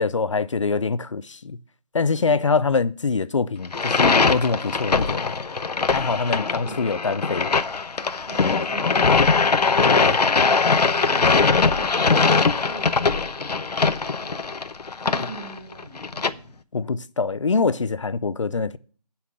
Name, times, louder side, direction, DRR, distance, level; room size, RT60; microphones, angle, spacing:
voice 1, 0.0-1.6 1.9-5.4 5.9-7.5 9.8-10.1 16.7-18.8, left 4 dB, 50° left, 0.6 m, -24 dB
sound 1, 3.7-16.3, left 4 dB, 80° left, 0.9 m, -21 dB
voice 2, 6.6-7.3 8.2-9.6 9.9-10.4 10.8-14.5 15.0-16.6, right 3 dB, 15° right, 4.4 m, -43 dB
8.5 x 5.7 x 7.7 m
figure-of-eight pair, 170°, 20 cm